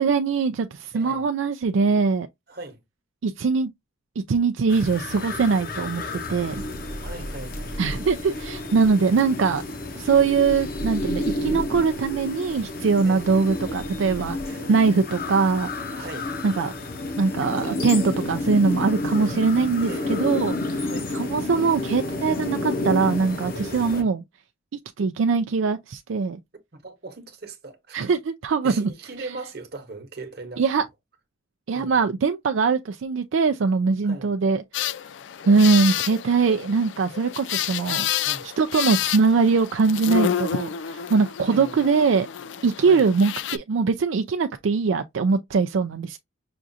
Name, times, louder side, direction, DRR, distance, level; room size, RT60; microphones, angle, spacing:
voice 1, 0.0-2.3 3.2-3.7 4.3-6.0 6.3-6.6 7.8-9.6 10.0-15.7 16.4-16.7 17.2-24.2 25.0-26.4 27.9-28.9 30.6-30.8 31.7-34.6 35.5-38.1 38.6-42.3 42.6-46.2, right 4 dB, 75° right, 0.4 m, -22 dB
voice 2, 0.9-1.3 2.5-2.8 7.0-7.8 13.0-13.3 15.9-16.3 19.8-20.3 20.8-21.1 23.8-24.1 26.7-28.0 28.6-30.6 31.7-32.0 34.0-34.3 38.2-38.5 41.4-41.8 42.8-43.1, right 3 dB, 50° right, 1.0 m, -39 dB
sound 1, 4.7-24.0, left 2 dB, 45° left, 0.8 m, -30 dB
sound 2, 6.3-14.5, right 1 dB, 25° right, 0.5 m, -39 dB
sound 3, 34.7-43.6, left 10 dB, 65° left, 0.3 m, -29 dB
5.9 x 2.4 x 2.6 m
head